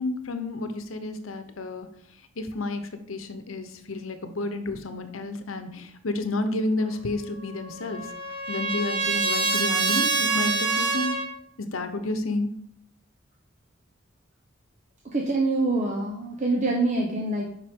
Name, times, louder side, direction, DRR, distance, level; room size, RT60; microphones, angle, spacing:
voice 1, 0.0-1.9 2.4-8.1 8.5-11.1 11.6-12.5, left 2 dB, 85° left, 8 dB, 0.9 m, -30 dB
Trumpet, 7.4-11.3, right 4 dB, 55° right, 1.0 m, -26 dB
voice 2, 15.1-17.5, right 2 dB, 35° right, -2 dB, 0.8 m, -25 dB
7.5 x 5.7 x 3.6 m, 0.69 s
head